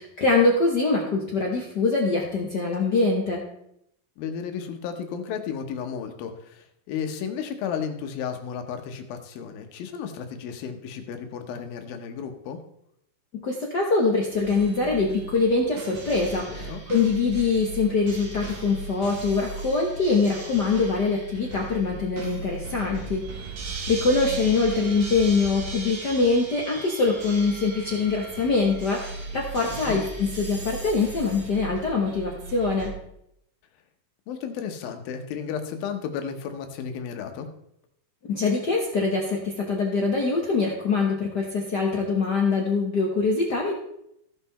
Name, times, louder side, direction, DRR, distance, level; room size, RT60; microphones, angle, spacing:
voice 1, 0.0-3.4 13.3-23.5 23.9-32.9 38.2-43.7, left 4 dB, 65° left, -2 dB, 1.0 m, -24 dB
voice 2, 4.2-12.6 16.5-16.8 29.7-30.0 34.3-37.5, left 7 dB, 85° left, 6 dB, 2.8 m, -33 dB
sound 1, 14.3-32.9, right 3 dB, 80° right, 3.7 m, -37 dB
16.0 x 5.7 x 4.1 m, 0.76 s
omnidirectional pair, 4.1 m